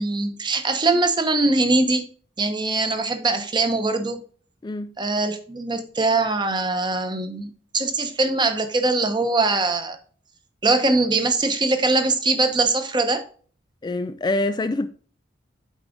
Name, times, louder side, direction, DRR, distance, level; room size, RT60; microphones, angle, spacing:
voice 1, 0.0-2.0 2.4-4.2 5.0-10.0 10.6-13.2, right 3 dB, 25° right, 1.0 m, -22 dB
voice 2, 4.6-4.9 13.8-14.9, left 2 dB, 20° left, 0.3 m, -25 dB
8.3 x 4.8 x 3.8 m
head